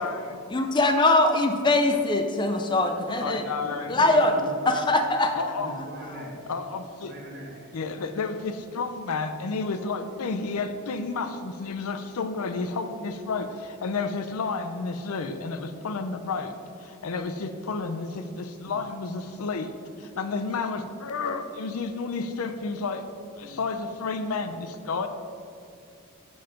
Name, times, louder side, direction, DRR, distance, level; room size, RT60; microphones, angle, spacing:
voice 1, 0.0-0.4 3.2-4.0 5.3-5.7 6.5-7.1 7.7-23.0 23.3-25.1, left 4 dB, 75° left, 8 dB, 0.5 m, -31 dB
voice 2, 0.5-3.4 3.9-4.3 4.7-5.3, left 2 dB, 20° left, 5 dB, 0.4 m, -22 dB
voice 3, 3.6-4.7 5.6-6.4 7.0-7.7 23.4-23.6, equal, 50° right, -1 dB, 1.3 m, -40 dB
5.4 x 5.1 x 5.7 m, 2.6 s
head